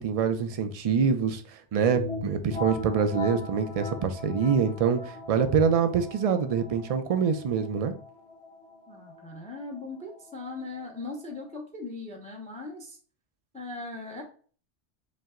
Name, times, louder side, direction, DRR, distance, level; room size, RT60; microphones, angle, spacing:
voice 1, 0.0-7.9, right 6 dB, 65° right, 8 dB, 0.3 m, -25 dB
sound 1, 1.9-11.5, left 3 dB, 70° left, 1.8 m, -40 dB
voice 2, 8.9-13.0 13.5-14.2, left 3 dB, 10° left, 2 dB, 0.6 m, -39 dB
5.3 x 2.0 x 3.6 m, 0.42 s
omnidirectional pair, 1.1 m